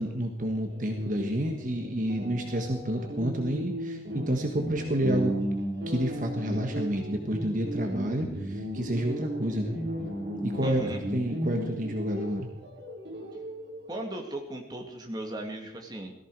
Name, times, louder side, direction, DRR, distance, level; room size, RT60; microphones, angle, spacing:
voice 1, 0.0-5.3 5.9-9.8 10.4-10.8 11.1-12.5, right 1 dB, 45° right, 3 dB, 1.5 m, -29 dB
sound 1, 0.7-14.0, right 1 dB, 60° right, 2.9 m, -35 dB
voice 2, 10.6-11.1 13.9-16.1, right 1 dB, 20° right, 2 dB, 2.2 m, -36 dB
18.0 x 14.5 x 4.8 m, 0.84 s
head